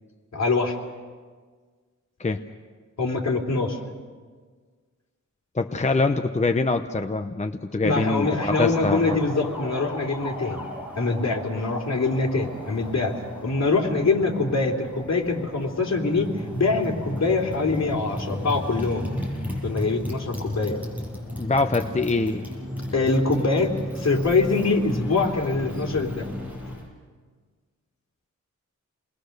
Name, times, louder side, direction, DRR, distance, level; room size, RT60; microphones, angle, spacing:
voice 1, 0.3-0.7 3.0-3.8 7.8-10.6 11.0-13.2 13.4-19.1 19.6-20.8 22.9-26.3, left 3 dB, 60° left, 0 dB, 3.2 m, -24 dB
voice 2, 5.5-9.2 21.4-22.4, left 3 dB, 25° left, 6 dB, 0.7 m, -24 dB
Motorcycle, 7.9-26.9, left 1 dB, 5° right, 6.4 m, -35 dB
29.0 x 21.0 x 6.6 m, 1.5 s
wide cardioid pair, 115°, 31 cm